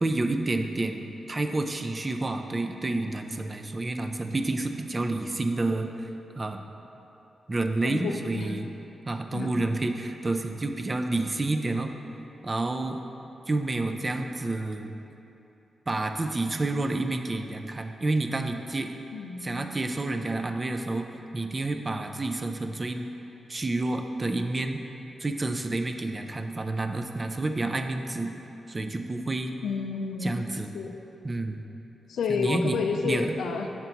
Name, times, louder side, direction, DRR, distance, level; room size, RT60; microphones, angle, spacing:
voice 1, 0.0-5.9 6.4-6.6 7.5-8.7 9.1-11.9 12.4-13.0 13.5-14.9 15.9-18.9 19.4-21.1 21.3-23.1 23.5-24.8 25.2-28.3 28.7-29.6 30.2-30.7 31.2-31.6 32.3-32.8 33.0-33.4, right 2 dB, 35° right, 6 dB, 0.4 m, -29 dB
voice 2, 7.8-8.6 9.3-9.7 19.1-19.8 29.6-30.4 30.7-30.9 32.1-33.7, left 5 dB, 80° left, 4 dB, 0.4 m, -30 dB
5.8 x 4.4 x 3.9 m, 3.0 s
supercardioid pair, 40°, 0 cm